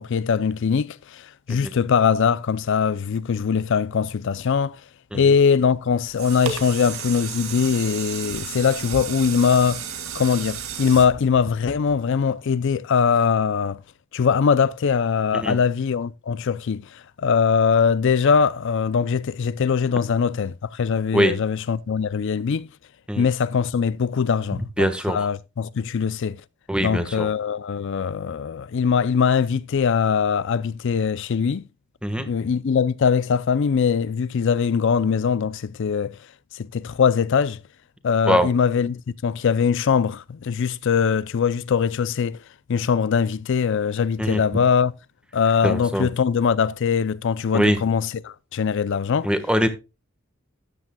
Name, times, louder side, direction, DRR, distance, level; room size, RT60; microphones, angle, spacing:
voice 1, 0.0-4.8 5.1-9.8 10.1-13.8 14.1-22.7 23.2-26.4 26.8-31.6 32.2-36.2 36.5-37.6 38.0-42.4 42.7-44.9 45.3-49.3, left 6 dB, 60° left, 0.4 m, -22 dB
sound 1, 5.9-12.2 12.7-12.8, right 6 dB, 80° right, 2.2 m, -33 dB
voice 2, 24.8-25.2 26.7-27.3 32.0-32.3 38.2-38.5 44.2-44.4 45.6-46.1 47.5-47.8 49.2-49.7, equal, 5° right, 1.3 m, -22 dB
13.5 x 9.9 x 2.2 m
head